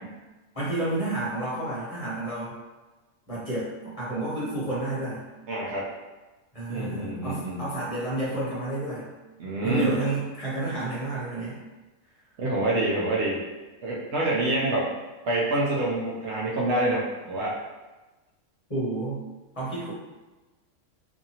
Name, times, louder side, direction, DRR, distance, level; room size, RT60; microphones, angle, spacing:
voice 1, 0.5-2.6 3.3-5.2 6.5-9.1 9.6-11.6 18.7-19.2 19.5-19.9, right 2 dB, 30° left, -9 dB, 0.9 m, -30 dB
voice 2, 5.5-5.9 6.7-7.6 9.4-10.0 12.4-13.4 13.8-14.9 15.2-17.6, right 2 dB, 65° right, -5 dB, 0.8 m, -26 dB
2.7 x 2.4 x 2.7 m, 1.2 s
omnidirectional pair, 1.3 m